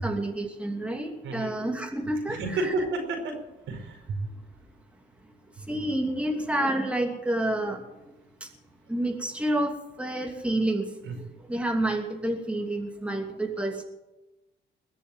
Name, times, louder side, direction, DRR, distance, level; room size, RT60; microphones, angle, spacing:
voice 1, 0.0-2.7 5.7-7.8 8.9-10.9 11.2-13.8, right 1 dB, 5° right, 3 dB, 2.8 m, -29 dB
voice 2, 2.3-3.4 3.7-4.4 11.0-11.1, right 2 dB, 80° right, 2 dB, 5.1 m, -31 dB
21.0 x 7.1 x 9.2 m, 0.96 s
cardioid pair, 90°, 20 cm